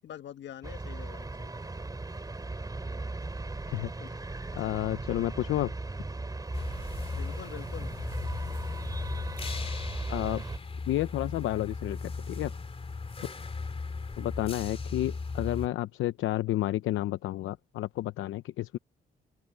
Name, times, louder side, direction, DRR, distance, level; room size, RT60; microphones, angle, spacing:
voice 1, 0.0-1.7 4.0-4.1 7.1-7.9, left 10 dB, 65° left, 1.4 m, -45 dB
sound 1, 0.6-10.6, right 2 dB, 20° right, 3.2 m, -38 dB
voice 2, 3.7-4.2 4.5-5.7 10.1-10.4 10.9-12.5 14.2-18.8, left 15 dB, 80° left, 0.8 m, -31 dB
sound 2, 6.5-15.7, left 4 dB, 30° left, 2.8 m, -37 dB
cardioid pair, 90°, 20 cm